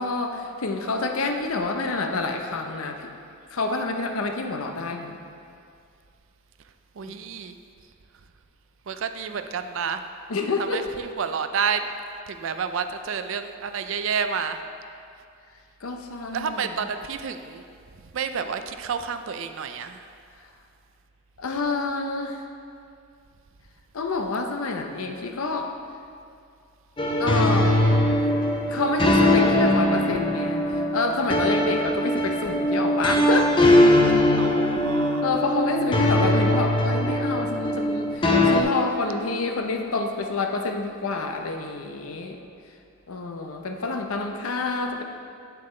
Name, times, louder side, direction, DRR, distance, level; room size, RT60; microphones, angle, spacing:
voice 1, 0.0-3.1 3.5-5.2 7.0-7.2 10.3-11.0 15.8-16.8 21.4-22.4 23.9-25.7 27.2-27.9 28.7-33.5 35.2-42.4 43.1-45.0, left 3 dB, 80° left, 4 dB, 0.7 m, -28 dB
voice 2, 7.0-7.5 8.9-10.0 10.6-11.8 12.3-14.6 16.3-17.6 18.1-20.0 34.4-35.2, right 6 dB, 60° right, 9 dB, 0.4 m, -29 dB
sound 1, 27.0-38.6, left 1 dB, 25° left, 0.5 m, -21 dB
8.7 x 7.6 x 3.2 m, 2.4 s
head